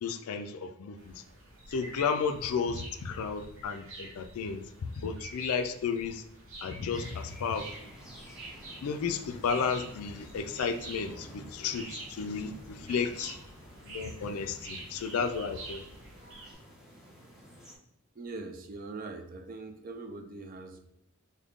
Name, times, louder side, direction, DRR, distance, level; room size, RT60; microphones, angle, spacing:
voice 1, 0.0-1.1 1.7-4.6 5.0-6.2 6.6-7.7 8.8-13.4 13.8-15.9, left 5 dB, 90° left, 8 dB, 0.4 m, -33 dB
sound 1, 1.0-16.5, right 2 dB, 70° right, 0.8 m, -48 dB
sound 2, 6.9-17.8, equal, 5° right, 0.7 m, -50 dB
voice 2, 18.2-20.8, right 3 dB, 40° right, 6 dB, 0.4 m, -42 dB
3.5 x 2.2 x 3.6 m, 0.80 s
head